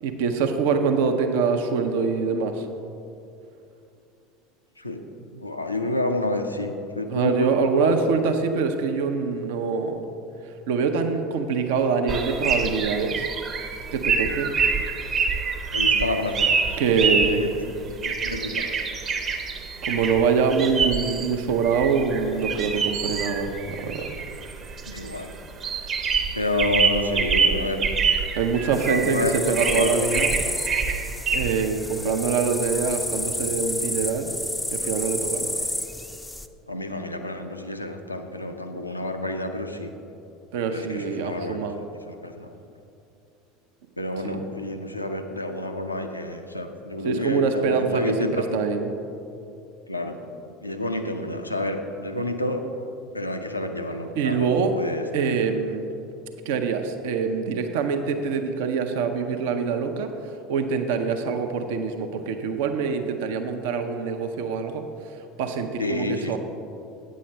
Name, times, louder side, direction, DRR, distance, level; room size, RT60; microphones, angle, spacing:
voice 1, 0.0-2.7 7.1-10.0 10.7-13.3 13.9-14.5 16.8-17.5 19.8-24.1 28.3-30.3 31.3-34.3 34.7-35.6 40.5-41.8 44.2-44.4 47.0-48.9 54.2-54.8 55.1-55.9 56.5-60.1 60.5-64.8 65.1-66.4, right 5 dB, 60° right, 6 dB, 0.6 m, -24 dB
voice 2, 5.3-8.0 15.7-16.8 17.4-17.5 18.0-18.7 24.9-25.3 26.4-27.8 28.9-29.4 29.6-29.9 36.7-39.9 40.7-41.6 42.1-42.5 44.0-48.6 49.9-50.2 50.6-52.6 53.1-55.0 65.8-66.4, left 2 dB, 90° left, 5 dB, 0.5 m, -29 dB
sound 1, 12.1-31.7, right 5 dB, 35° right, 0.9 m, -26 dB
sound 2, 28.7-36.5, left 1 dB, 5° left, 0.4 m, -31 dB
9.1 x 7.4 x 4.4 m, 2.7 s
figure-of-eight pair, 75°, 0 cm